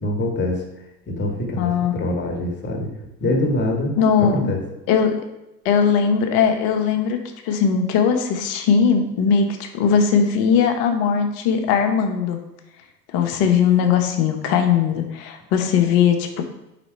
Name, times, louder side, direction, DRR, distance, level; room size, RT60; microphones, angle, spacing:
voice 1, 0.0-0.7 1.1-2.9 3.2-3.9 4.2-4.6, left 1 dB, 20° left, 1 dB, 1.4 m, -24 dB
voice 2, 1.6-2.0 4.0-4.5 4.9-5.2 5.6-7.2 7.4-12.4 13.1-16.4, left 7 dB, 50° left, 5 dB, 1.0 m, -19 dB
5.1 x 4.1 x 4.5 m, 0.94 s
figure-of-eight pair, 75°, 48 cm